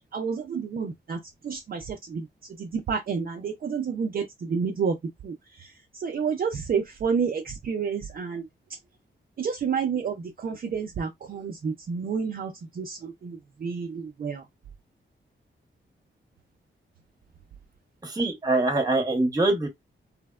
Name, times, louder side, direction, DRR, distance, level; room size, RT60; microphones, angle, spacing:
voice 1, 0.1-1.2 1.4-2.2 2.6-4.9 5.2-5.3 6.0-8.5 9.4-14.4, right 6 dB, 50° right, 0.5 m, -29 dB
voice 2, 18.1-19.7, right 2 dB, 20° right, 0.9 m, -23 dB
3.2 x 2.1 x 2.2 m
wide cardioid pair, 145°, 20 cm